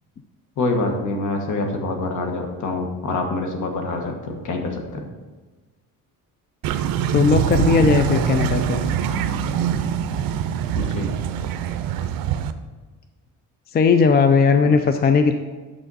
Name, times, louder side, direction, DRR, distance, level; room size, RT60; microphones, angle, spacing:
voice 1, 0.6-5.1 10.7-11.1, left 2 dB, 60° left, 3 dB, 1.4 m, -26 dB
sound 1, 6.6-12.5, right 8 dB, 80° right, 0.6 m, -23 dB
voice 2, 7.1-8.8 13.7-15.3, left 5 dB, 30° left, 8 dB, 0.4 m, -17 dB
9.0 x 6.1 x 4.1 m, 1.3 s
cardioid pair, 135°, 34 cm